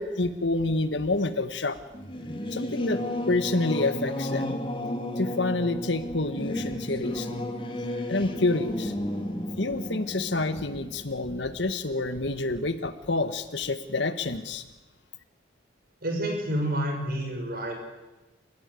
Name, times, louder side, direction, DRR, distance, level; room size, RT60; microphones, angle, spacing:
voice 1, 0.0-1.8 2.5-3.0 3.3-4.5 5.2-7.4 8.1-8.9 9.6-14.6, left 2 dB, 65° left, 10 dB, 1.5 m, -28 dB
Singing / Musical instrument, 1.9-12.0, left 1 dB, 25° left, 2.4 m, -33 dB
voice 2, 16.0-17.7, right 1 dB, 50° right, 2 dB, 6.5 m, -29 dB
28.5 x 16.0 x 8.5 m, 1.1 s
head